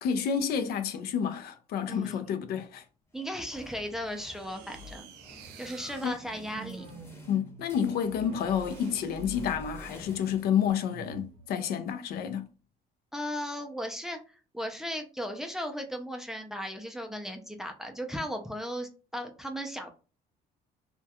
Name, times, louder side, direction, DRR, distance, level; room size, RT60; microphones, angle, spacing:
voice 1, 0.0-2.8 6.0-6.1 7.3-12.5, left 8 dB, 65° left, 0.4 m, -29 dB
voice 2, 1.9-2.3 3.1-5.1 5.6-6.9 13.1-14.2 14.5-19.9, equal, 5° right, 0.4 m, -36 dB
sound 1, 3.1-11.1, left 2 dB, 15° left, 0.8 m, -51 dB
sound 2, 4.0-10.0 10.9-11.5, right 4 dB, 90° right, 0.4 m, -47 dB
2.3 x 2.2 x 2.7 m
cardioid pair, 110°, 17 cm